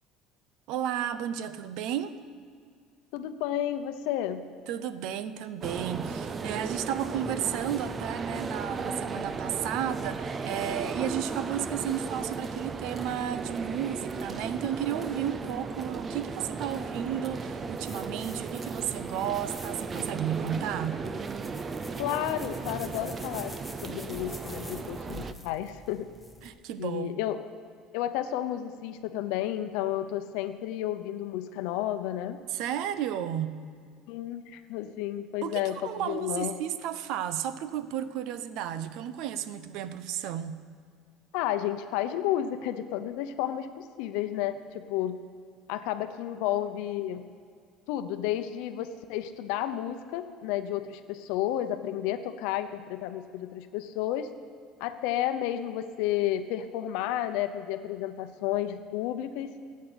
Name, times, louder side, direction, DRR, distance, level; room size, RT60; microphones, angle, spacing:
voice 1, 0.7-2.2 4.7-21.1 26.4-27.2 32.5-33.7 35.4-40.6, right 10 dB, 60° right, 13 dB, 0.7 m, -33 dB
voice 2, 3.1-4.4 22.0-23.5 23.8-26.1 26.8-27.4 27.9-32.4 34.1-36.6 41.3-45.2 45.7-47.2 47.9-54.3 54.8-59.5, left 12 dB, 75° left, 9 dB, 0.8 m, -31 dB
sound 1, 5.6-25.3, right 4 dB, 20° right, 0.4 m, -36 dB
sound 2, 17.8-26.5, left 1 dB, ahead, 0.9 m, -48 dB
14.0 x 8.5 x 7.9 m, 2.1 s
cardioid pair, 165°, 0 cm